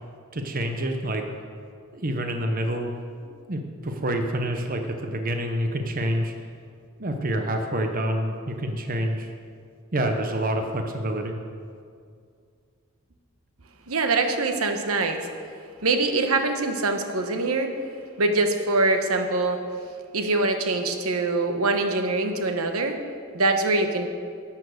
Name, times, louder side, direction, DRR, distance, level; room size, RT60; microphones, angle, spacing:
voice 1, 0.3-1.3 1.9-6.3 7.0-9.3 9.9-11.3, right 1 dB, 40° right, 4 dB, 0.9 m, -27 dB
voice 2, 13.9-15.3 15.8-17.7 18.2-19.6 20.1-23.0 23.3-24.1, right 3 dB, 75° right, 5 dB, 1.1 m, -24 dB
11.0 x 8.6 x 6.5 m, 2.2 s
head